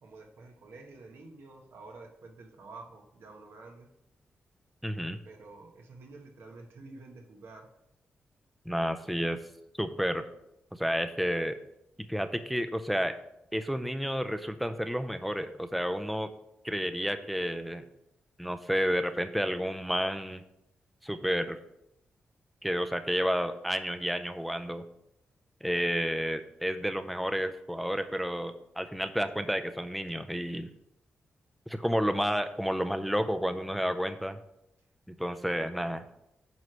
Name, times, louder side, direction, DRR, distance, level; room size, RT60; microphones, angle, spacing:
voice 1, 0.0-3.9 5.2-7.7, right 3 dB, 80° right, 3 dB, 1.2 m, -49 dB
voice 2, 4.8-5.2 8.7-9.4 9.8-10.2 10.7-11.6 12.1-13.1 13.5-16.3 16.6-17.8 18.4-20.4 21.0-21.6 22.6-24.8 25.6-30.7 31.7-34.4 35.1-36.1, equal, ahead, 9 dB, 0.4 m, -31 dB
9.3 x 3.2 x 6.0 m, 0.82 s
wide cardioid pair, 135°, 4 cm